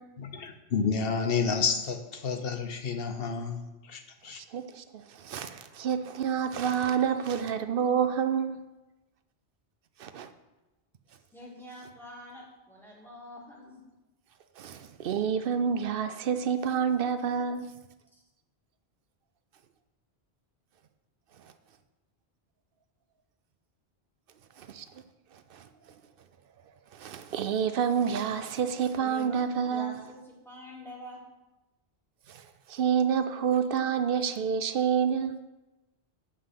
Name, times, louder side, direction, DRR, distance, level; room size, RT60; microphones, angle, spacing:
voice 1, 0.2-4.4, left 5 dB, 60° left, 7 dB, 1.0 m, -30 dB
voice 2, 4.3-8.6 10.0-10.3 14.6-17.7 24.6-24.9 25.5-25.6 26.9-30.0 32.3-32.4 32.7-35.4, right 7 dB, 60° right, 10 dB, 0.8 m, -28 dB
voice 3, 11.3-13.8 18.1-18.2 29.0-30.2 30.5-31.2, left 1 dB, ahead, -4 dB, 2.1 m, -45 dB
8.8 x 5.6 x 5.7 m, 1.0 s
omnidirectional pair, 1.1 m